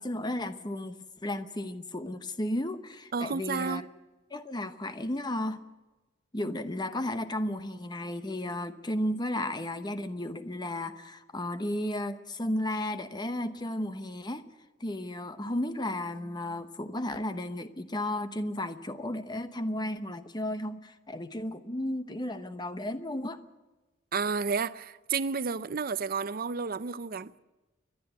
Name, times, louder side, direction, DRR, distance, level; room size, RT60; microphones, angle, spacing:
voice 1, 0.0-3.9 4.3-5.6 6.3-14.4 14.8-23.4, left 1 dB, 25° left, 1.0 m, -34 dB
voice 2, 3.1-3.8 24.1-27.3, right 5 dB, 50° right, 0.6 m, -31 dB
30.0 x 11.5 x 8.0 m
head